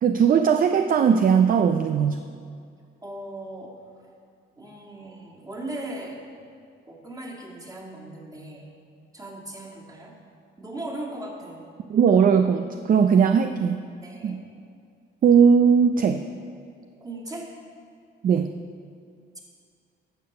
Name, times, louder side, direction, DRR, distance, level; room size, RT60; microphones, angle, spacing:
voice 1, 0.0-2.3 11.9-13.9 14.2-14.3 15.2-16.2 18.2-18.5, right 7 dB, 45° right, 8 dB, 0.5 m, -19 dB
voice 2, 3.0-3.8 4.6-6.2 6.9-8.7 9.1-10.2 10.6-11.6 14.0-14.4 17.0-17.6, right 1 dB, 20° right, -2 dB, 2.2 m, -38 dB
11.0 x 6.7 x 6.7 m, 2.2 s
cardioid pair, 90°, 20 cm